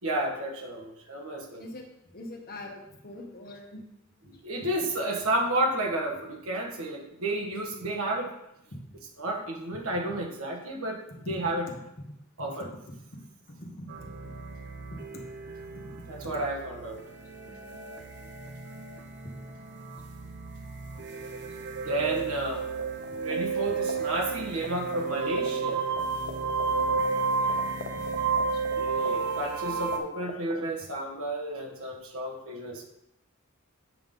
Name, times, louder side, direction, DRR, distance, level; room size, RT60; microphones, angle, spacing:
voice 1, 0.0-1.6 4.4-8.3 9.2-11.7 12.4-12.7 16.1-17.0 21.8-22.7 23.2-25.8 28.8-32.8, right 1 dB, 80° right, 0 dB, 1.5 m, -31 dB
voice 2, 2.1-3.8 8.7-8.8 11.2-11.3 13.1-14.2 15.1-15.2 15.8-16.1 17.5-17.9 19.7-19.8 27.6-27.8 28.5-28.6, left 1 dB, 45° left, 2 dB, 1.2 m, -43 dB
sound 1, 13.9-30.0, right 4 dB, 55° right, 0.8 m, -32 dB
sound 2, 22.8-23.3 23.6-25.7 26.0-26.1 26.2-30.0 30.2-30.6, left 5 dB, 80° left, 0.9 m, -37 dB
7.8 x 5.5 x 3.8 m, 0.82 s
head